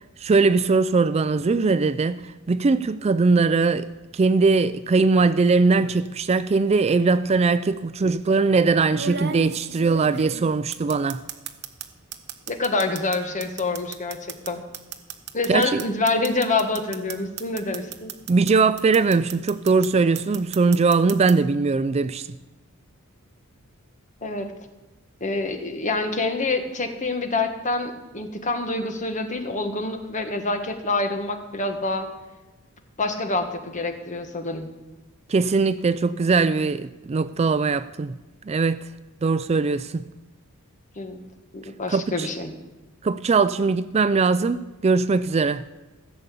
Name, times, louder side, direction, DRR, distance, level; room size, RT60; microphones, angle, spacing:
voice 1, 0.2-11.2 15.5-15.8 18.3-22.3 35.3-38.1 38.5-38.8 39.2-40.0 41.9-42.3 43.0-45.6, right 4 dB, 30° right, 0.3 m, -21 dB
sound 1, 5.7-6.1 7.3-7.4 8.9-11.9 12.1-18.5 18.8-19.9 20.1-21.3, right 7 dB, 50° right, 1.0 m, -35 dB
voice 2, 12.5-14.6 15.3-18.1 24.2-24.5 25.2-32.1 33.0-34.7 41.0-41.2 41.5-42.5, left 3 dB, 35° left, 1.4 m, -26 dB
16.0 x 6.8 x 8.4 m
head